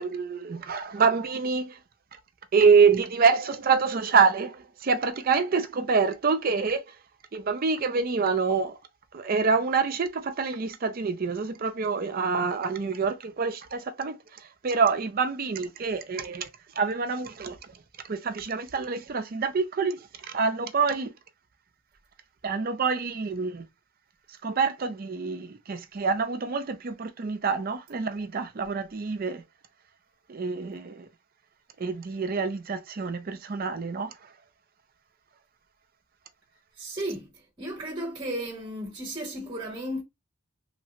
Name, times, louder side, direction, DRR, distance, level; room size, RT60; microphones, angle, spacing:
voice 1, 0.0-1.8 2.5-6.8 7.3-8.8 9.1-14.2 14.6-16.5 16.8-17.6 18.1-21.1 22.4-23.6 24.4-29.4 30.3-31.1 31.8-34.1, right 5 dB, 40° right, 0.4 m, -26 dB
voice 2, 36.8-37.3 37.6-40.0, right 1 dB, 20° right, 0.9 m, -34 dB
3.2 x 2.0 x 2.7 m
head